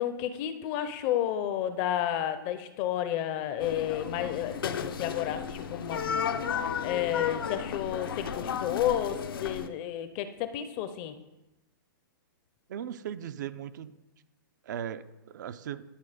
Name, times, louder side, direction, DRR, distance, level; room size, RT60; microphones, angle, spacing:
voice 1, 0.0-11.1, left 11 dB, 30° left, 10 dB, 0.5 m, -31 dB
sound 1, 3.6-9.7, left 7 dB, 85° left, 0.7 m, -34 dB
voice 2, 12.7-13.9 14.7-15.8, right 9 dB, 55° right, 13 dB, 0.4 m, -38 dB
11.0 x 3.9 x 5.0 m, 0.98 s
hypercardioid pair, 160°, 11 cm